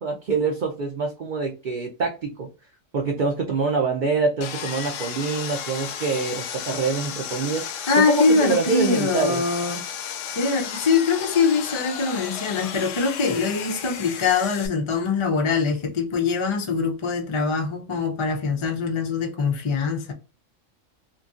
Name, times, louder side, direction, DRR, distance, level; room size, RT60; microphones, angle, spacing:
voice 1, 0.0-2.5 2.9-7.6 8.0-9.4, right 4 dB, 55° right, 0.5 m, -25 dB
Sawing, 4.4-14.7, left 8 dB, 75° left, 0.9 m, -33 dB
voice 2, 7.9-9.8 10.4-20.1, left 4 dB, 50° left, 0.3 m, -23 dB
2.8 x 2.6 x 2.4 m
omnidirectional pair, 1.3 m